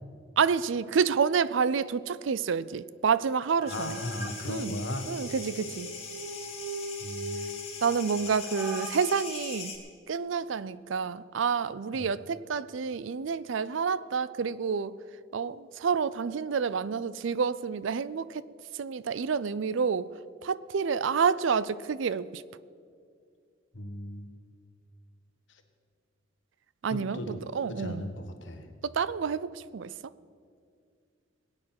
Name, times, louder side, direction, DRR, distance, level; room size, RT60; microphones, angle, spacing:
voice 1, 0.4-3.9 4.5-4.8 5.1-5.9 7.8-9.7 10.1-14.9 15.3-18.4 18.8-20.1 20.4-22.4 26.8-28.1 28.8-29.9, right 6 dB, 70° right, 18 dB, 0.4 m, -29 dB
sound 1, 3.6-4.3 4.9-8.9, right 2 dB, 10° right, 1.2 m, -40 dB
voice 2, 3.7-5.1 7.0-7.5 11.9-12.1 23.7-24.3 26.9-27.4 27.7-28.7, left 1 dB, 65° left, 7 dB, 1.4 m, -36 dB
sound 2, 3.7-9.8, left 5 dB, 30° left, 2.9 m, -41 dB
21.5 x 8.8 x 5.9 m, 2.2 s
head